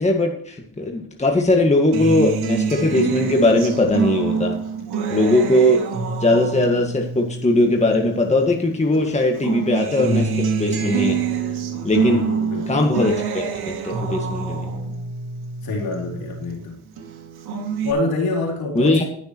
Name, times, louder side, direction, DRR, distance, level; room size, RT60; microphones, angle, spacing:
voice 1, 0.0-4.5 5.1-5.8 6.2-11.2 11.8-12.2 12.7-14.6 18.7-19.0, left 1 dB, 20° left, 2 dB, 1.7 m, -19 dB
Acoustic guitar, 1.9-8.6 8.9-16.6 17.0-17.9, right 5 dB, 85° right, 2.1 m, -26 dB
voice 2, 12.1-12.9 15.6-16.8 17.8-19.0, left 2 dB, 70° left, 0 dB, 4.2 m, -26 dB
19.0 x 6.9 x 3.0 m, 0.64 s
cardioid pair, 90°, 37 cm